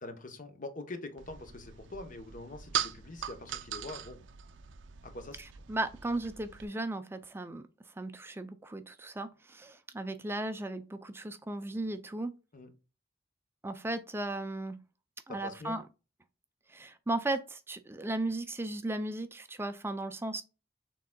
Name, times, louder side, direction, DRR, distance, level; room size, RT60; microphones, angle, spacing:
voice 1, 0.0-4.2 5.0-5.4 12.5-12.7 15.3-15.8, left 2 dB, 45° left, 0.9 m, -44 dB
sound 1, 1.2-6.7, right 9 dB, 85° right, 0.5 m, -40 dB
voice 2, 5.4-7.6 8.0-12.3 13.6-14.8 15.3-15.8 16.7-20.4, right 2 dB, 15° right, 0.4 m, -36 dB
6.5 x 3.7 x 2.2 m
head